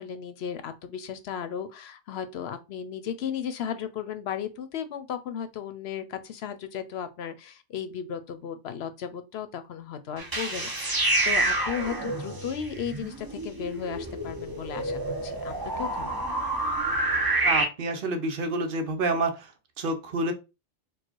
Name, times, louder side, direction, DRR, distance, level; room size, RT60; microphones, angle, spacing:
voice 1, 0.0-16.2, left 8 dB, 65° left, 0.9 m, -35 dB
sound 1, 10.2-17.6, right 2 dB, 20° right, 0.7 m, -28 dB
voice 2, 17.4-19.5 19.8-20.3, right 2 dB, 50° right, 1.0 m, -28 dB
4.7 x 2.3 x 4.5 m
omnidirectional pair, 1.2 m